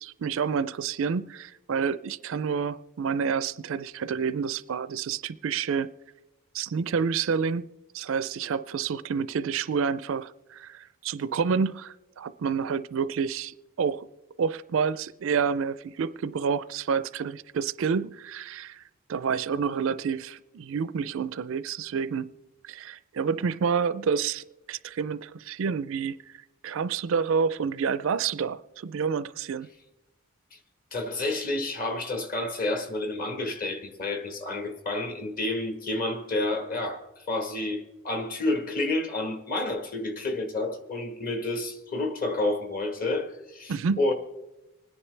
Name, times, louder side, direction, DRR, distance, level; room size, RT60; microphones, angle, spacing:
voice 1, 0.0-5.9 6.5-7.7 7.9-14.1 14.4-18.8 19.1-22.3 22.6-26.3 26.6-29.7 43.7-44.0, right 6 dB, 65° right, 0.4 m, -29 dB
voice 2, 30.9-37.0 37.3-44.1, left 2 dB, 40° left, 1.4 m, -30 dB
25.5 x 10.0 x 3.3 m
head